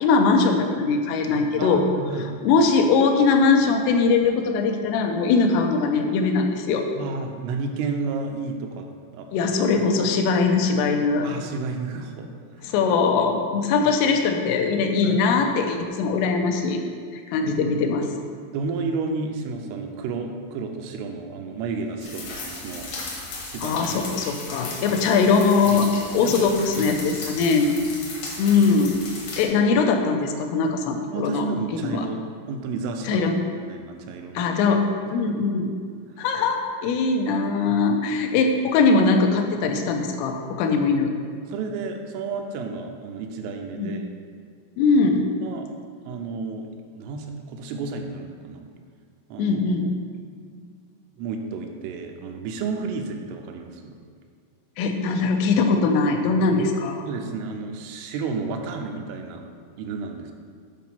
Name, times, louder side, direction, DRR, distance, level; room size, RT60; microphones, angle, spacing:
voice 1, 0.0-1.9 2.4-6.9 9.3-11.3 12.6-16.8 17.1-18.1 23.6-25.9 26.1-27.8 28.4-29.0 29.4-31.5 31.8-32.1 33.1-33.5 34.4-34.8 35.1-35.7 36.2-41.1 43.7-44.0 44.8-45.3 49.4-49.9 54.8-57.0, left 4 dB, 85° left, 4 dB, 3.2 m, -21 dB
voice 2, 1.3-2.3 7.0-8.9 9.1-9.5 11.2-12.7 15.0-15.2 17.4-17.6 18.5-22.9 23.4-24.0 24.9-25.0 25.7-26.3 26.8-27.0 27.3-27.5 31.1-32.2 32.5-34.5 35.1-35.2 37.7-37.8 41.5-44.1 45.4-45.7 46.1-46.7 47.0-48.6 49.3-49.6 51.2-54.0 57.1-59.4 59.8-60.3, right 4 dB, 85° right, 4 dB, 3.2 m, -32 dB
sound 1, 22.0-29.4, left 3 dB, 70° left, 1.8 m, -36 dB
9.3 x 4.2 x 5.7 m, 2.1 s
omnidirectional pair, 5.7 m